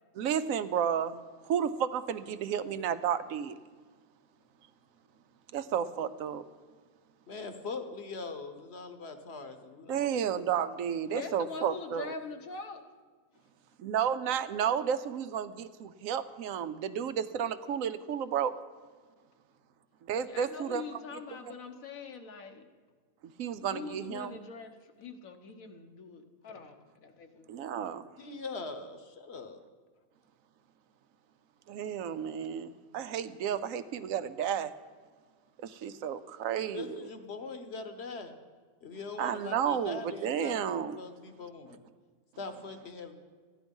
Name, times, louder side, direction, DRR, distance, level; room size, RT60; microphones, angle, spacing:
voice 1, 0.2-1.2 1.4-3.5 5.5-6.4 9.9-12.1 13.8-18.6 20.1-20.8 23.4-24.4 27.5-28.1 31.7-34.7 35.6-37.1 39.2-41.0, right 8 dB, 75° right, 12 dB, 1.0 m, -32 dB
voice 2, 7.3-10.2 28.2-29.6 36.5-38.3 38.8-41.8 42.4-43.2, left 4 dB, 55° left, 7 dB, 1.2 m, -42 dB
voice 3, 11.1-12.8 13.3-13.5 20.2-22.7 23.6-27.7, left 4 dB, 80° left, 6 dB, 1.4 m, -43 dB
14.0 x 10.0 x 5.3 m, 1.5 s
omnidirectional pair, 1.4 m